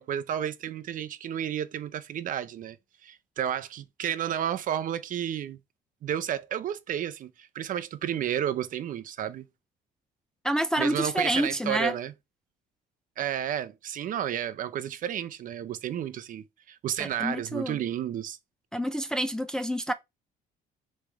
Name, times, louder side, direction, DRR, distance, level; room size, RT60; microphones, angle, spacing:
voice 1, 0.0-2.8 3.0-5.6 6.0-9.5 10.8-12.1 13.2-18.4, right 10 dB, 50° right, 0.6 m, -32 dB
voice 2, 10.4-11.9 17.0-17.8 18.7-19.9, right 1 dB, 5° left, 0.4 m, -28 dB
3.4 x 3.2 x 4.7 m
cardioid pair, 110°, 17 cm